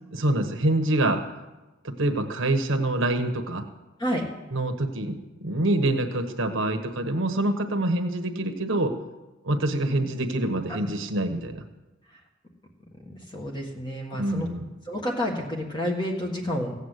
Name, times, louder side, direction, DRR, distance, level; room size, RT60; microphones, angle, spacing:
voice 1, 0.1-1.2 1.8-3.6 4.5-9.0 9.4-11.6 14.1-14.7, right 1 dB, 70° right, 6 dB, 1.2 m, -26 dB
voice 2, 13.1-14.5 14.9-16.7, equal, 20° left, 0 dB, 1.7 m, -30 dB
16.0 x 8.1 x 8.1 m, 1.1 s
head